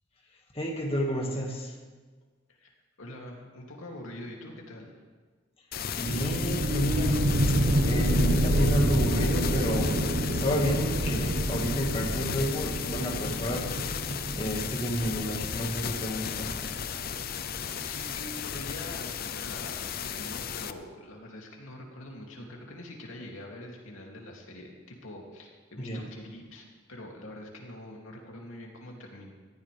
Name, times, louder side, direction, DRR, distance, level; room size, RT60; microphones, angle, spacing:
voice 1, 0.5-1.8 6.0-7.2 7.5-7.6 7.8-13.7 14.4-16.5 25.8-26.0, equal, 30° left, -1 dB, 1.9 m, -31 dB
voice 2, 2.5-4.9 17.7-29.3, left 1 dB, 90° left, -1 dB, 2.8 m, -44 dB
sound 1, 5.7-20.7, left 7 dB, 45° left, 0.6 m, -35 dB
sound 2, 6.1-17.5, right 1 dB, 70° right, 1.3 m, -28 dB
19.5 x 14.5 x 3.5 m, 1.4 s
head